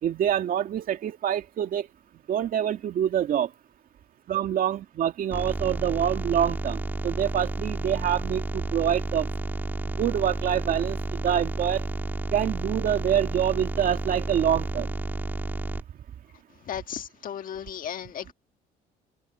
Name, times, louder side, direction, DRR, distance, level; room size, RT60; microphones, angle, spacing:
voice 1, 0.0-1.9 2.3-3.5 4.3-9.3 9.9-11.9 12.3-14.9, right 10 dB, 55° right, 2.2 m, -26 dB
sound 1, 5.3-15.8, right 2 dB, 10° right, 1.8 m, -31 dB
voice 2, 16.6-18.3, left 9 dB, 55° left, 1.6 m, -35 dB
cardioid pair, 110°, 17 cm